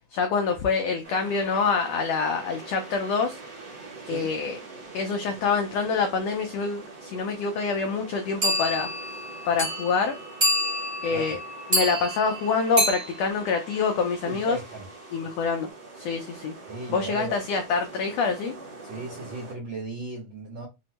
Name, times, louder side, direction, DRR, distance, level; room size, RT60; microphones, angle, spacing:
voice 1, 0.1-3.4 4.1-4.6 4.9-8.9 9.4-10.2 11.0-11.4 11.7-14.6 15.1-15.7 16.0-16.5 16.9-18.5, left 5 dB, 90° left, 1.4 m, -26 dB
sound 1, 1.0-19.5, right 3 dB, 60° right, 1.1 m, -44 dB
sound 2, 8.4-14.3, equal, 30° right, 0.5 m, -28 dB
voice 2, 14.3-14.8 16.7-17.4 18.8-20.7, right 3 dB, 85° right, 1.1 m, -36 dB
6.0 x 2.1 x 2.9 m
omnidirectional pair, 3.6 m